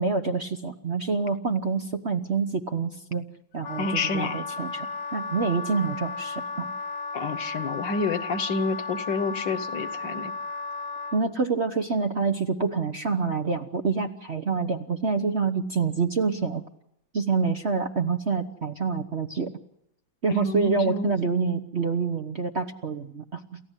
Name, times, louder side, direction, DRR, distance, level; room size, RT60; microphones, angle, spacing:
voice 1, 0.0-3.2 3.5-4.9 5.1-6.7 11.1-16.6 17.1-19.5 20.2-23.6, right 4 dB, 40° right, 6 dB, 1.0 m, -27 dB
Wind instrument woodwind instrument, 3.6-11.2, left 3 dB, 80° left, 2.3 m, -34 dB
voice 2, 3.8-4.4 7.1-10.3 20.3-21.2, left 3 dB, 65° left, 11 dB, 1.8 m, -28 dB
29.0 x 15.0 x 8.2 m, 0.80 s
omnidirectional pair, 2.2 m